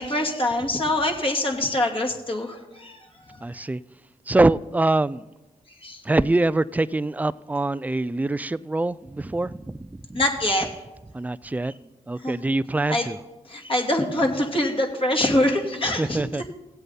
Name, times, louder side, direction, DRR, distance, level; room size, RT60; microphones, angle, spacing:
voice 1, 0.0-3.0 5.8-6.0 10.1-10.8 12.2-12.4 12.9-13.0 13.5-16.2, left 1 dB, 35° left, 2.4 m, -24 dB
voice 2, 3.4-3.8 4.3-5.2 6.0-10.2 11.1-11.7 12.1-13.2 16.0-16.4, right 2 dB, 10° right, 0.4 m, -24 dB
16.5 x 7.9 x 4.1 m
supercardioid pair, 45°, 15 cm